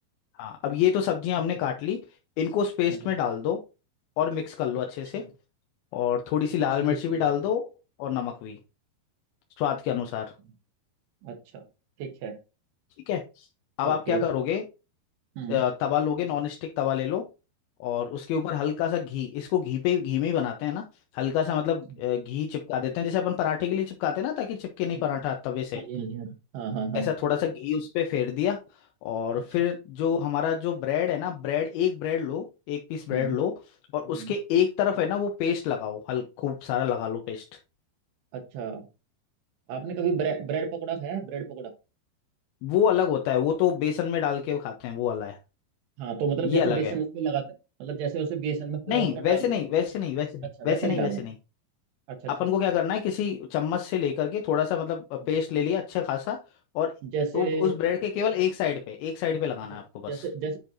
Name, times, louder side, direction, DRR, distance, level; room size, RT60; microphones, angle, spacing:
voice 1, 0.4-2.0 2.4-3.6 4.2-5.2 5.9-7.6 8.0-8.6 9.6-10.3 13.1-13.5 13.8-14.6 15.5-17.2 17.8-20.8 21.1-25.8 26.9-28.6 29.0-33.5 33.9-37.4 42.6-45.4 46.4-46.9 48.9-51.3 52.3-56.4 56.8-56.9 57.3-60.3, left 9 dB, 75° left, 3 dB, 2.5 m, -27 dB
voice 2, 6.6-7.3 11.2-11.6 12.0-12.4 13.9-14.2 15.4-15.6 24.9-25.0 25.7-27.1 33.1-33.4 34.1-34.3 38.3-38.8 39.7-41.7 46.0-47.5 47.8-49.5 50.6-51.2 52.1-52.2 57.0-57.8 60.1-60.6, right 6 dB, 80° right, 5 dB, 3.4 m, -31 dB
10.0 x 4.5 x 2.6 m, 0.29 s
omnidirectional pair, 4.8 m